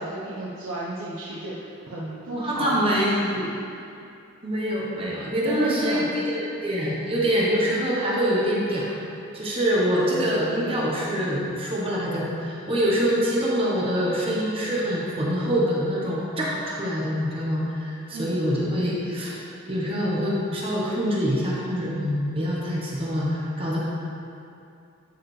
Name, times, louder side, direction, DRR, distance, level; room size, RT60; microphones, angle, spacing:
voice 1, 0.0-2.9 3.2-3.9 5.4-6.1 18.1-18.4, right 1 dB, 75° right, -7 dB, 1.0 m, -32 dB
voice 2, 2.4-3.3 4.4-19.4 19.7-23.8, equal, 25° right, -5 dB, 1.0 m, -25 dB
12.0 x 4.7 x 3.3 m, 2.6 s
head